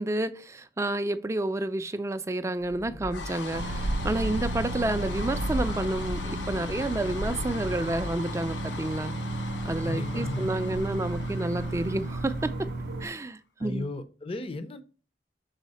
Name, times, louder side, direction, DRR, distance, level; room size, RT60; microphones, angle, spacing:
voice 1, 0.0-9.1 9.6-12.5 13.0-13.9, right 2 dB, 15° right, 0.4 m, -30 dB
sound 1, 2.6-13.1, left 3 dB, 75° left, 0.6 m, -39 dB
sound 2, 3.5-13.1, right 1 dB, 55° right, 0.6 m, -33 dB
voice 2, 9.8-10.5 13.6-14.8, left 2 dB, 30° left, 0.6 m, -35 dB
6.4 x 4.0 x 4.1 m
head